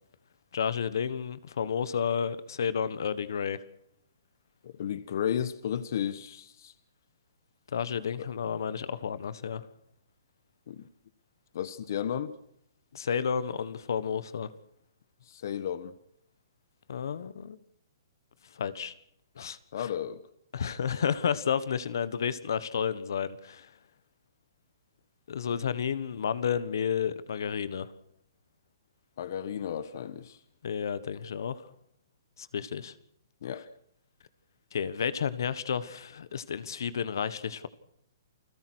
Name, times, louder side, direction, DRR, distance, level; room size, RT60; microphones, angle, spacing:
voice 1, 0.5-3.6 7.7-9.7 12.9-14.5 16.9-17.6 18.5-18.9 19.4-19.9 20.5-23.7 25.3-27.9 30.6-31.7 32.4-32.9 34.7-37.7, left 7 dB, 70° left, 16 dB, 1.4 m, -31 dB
voice 2, 4.6-6.7 8.2-8.3 10.7-10.9 11.5-12.3 15.3-15.9 19.7-20.2 29.2-30.4 33.4-33.6, left 9 dB, 55° left, 14 dB, 1.3 m, -33 dB
29.0 x 17.5 x 6.3 m, 0.71 s
hypercardioid pair, 155°, 2 cm